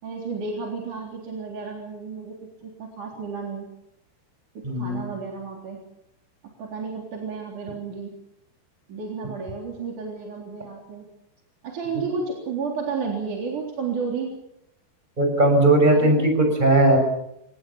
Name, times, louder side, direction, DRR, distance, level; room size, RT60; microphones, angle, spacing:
voice 1, 0.0-2.4 2.6-3.7 4.7-5.8 6.6-8.1 8.9-11.1 11.6-14.3 15.9-16.3, right 5 dB, 40° right, -1 dB, 4.7 m, -32 dB
voice 2, 4.6-5.1 15.2-17.0, right 2 dB, 10° right, 4 dB, 6.4 m, -18 dB
27.0 x 19.5 x 7.2 m, 0.81 s
omnidirectional pair, 5.6 m